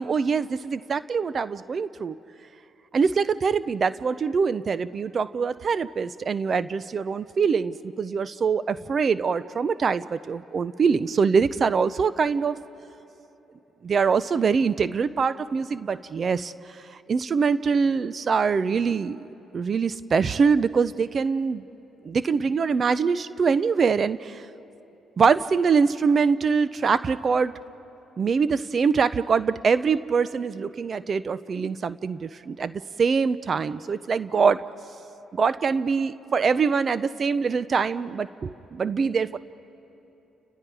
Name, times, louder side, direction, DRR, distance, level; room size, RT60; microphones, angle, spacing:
voice 1, 0.0-2.1 2.9-12.6 13.8-16.5 17.1-19.3 19.5-21.6 22.0-24.4 25.2-27.5 28.2-34.7 35.3-39.4, right 5 dB, 50° right, 15 dB, 0.6 m, -24 dB
29.5 x 29.5 x 4.8 m, 3.0 s
supercardioid pair, 65°, 0 cm